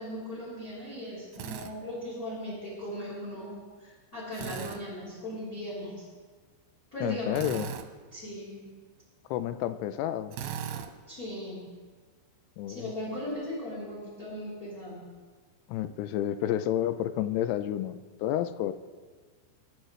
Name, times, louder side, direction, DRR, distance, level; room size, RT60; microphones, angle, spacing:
voice 1, 0.0-3.5 3.8-6.1 6.9-7.5 8.1-8.6 11.1-11.6 12.7-15.0, equal, 20° left, -7 dB, 3.9 m, -38 dB
Drill, 1.3-1.7 4.3-4.8 7.3-7.9 10.3-10.9, right 8 dB, 75° right, 2.6 m, -37 dB
voice 2, 7.0-7.7 9.3-10.4 12.6-12.9 15.7-18.7, left 12 dB, 85° left, 11 dB, 2.4 m, -30 dB
25.5 x 11.0 x 3.2 m, 1.5 s
omnidirectional pair, 5.3 m